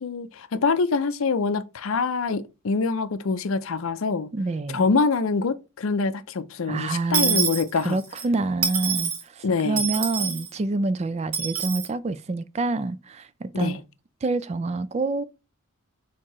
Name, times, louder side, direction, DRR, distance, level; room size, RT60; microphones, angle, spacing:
voice 1, 0.0-4.3 4.7-8.0 9.4-9.9 13.5-13.8, left 4 dB, 65° left, 0.5 m, -25 dB
voice 2, 4.3-4.9 6.7-7.5 7.8-13.8 14.2-15.2, right 3 dB, 30° right, 0.3 m, -27 dB
Dishes pots and pans / Coin (dropping), 7.1-8.2 8.6-9.2 9.8-10.5 11.3-11.9, right 6 dB, 75° right, 1.7 m, -26 dB
4.6 x 3.6 x 3.0 m
head